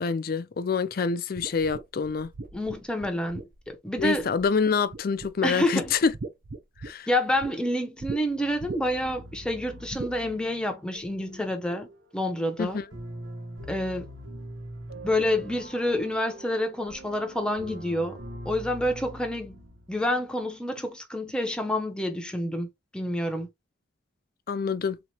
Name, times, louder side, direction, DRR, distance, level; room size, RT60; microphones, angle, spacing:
voice 1, 0.0-2.3 4.0-6.1 6.8-7.1 12.6-12.8 24.5-25.0, left 5 dB, 50° left, 0.4 m, -26 dB
sound 1, 1.4-4.6 4.9-5.5 5.8-7.5 8.0-8.2 8.6-9.1 9.9-10.2, right 3 dB, 50° right, 0.6 m, -39 dB
voice 2, 2.5-4.3 5.4-5.9 7.1-11.9 12.1-12.8 13.7-14.1 15.0-18.2 18.4-19.6 19.9-22.7 22.9-23.5, left 1 dB, 5° left, 0.6 m, -28 dB
sound 2, 8.2-20.3, right 1 dB, 80° right, 1.0 m, -43 dB
3.5 x 2.9 x 2.8 m
head